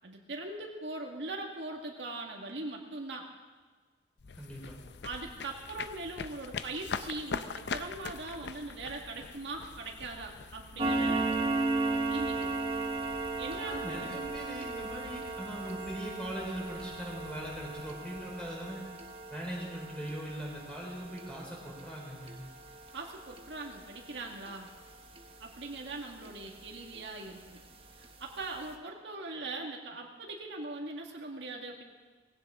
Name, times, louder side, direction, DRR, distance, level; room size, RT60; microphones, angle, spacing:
voice 1, 0.0-3.3 5.0-11.3 12.1-12.6 13.4-14.1 22.9-24.7 25.4-27.6 28.0-31.8, right 2 dB, 75° right, 0 dB, 1.8 m, -41 dB
sound 1, 4.2-19.3, left 5 dB, 70° left, 0.5 m, -44 dB
voice 2, 4.3-4.8 13.5-18.8 19.3-22.4, right 1 dB, 5° left, -3 dB, 4.2 m, -40 dB
sound 2, 10.8-25.9 26.3-26.5 26.9-27.0 27.5-27.6 28.0-28.1 28.4-28.6, right 3 dB, 30° right, 1.1 m, -36 dB
19.5 x 16.5 x 3.7 m, 1.4 s
head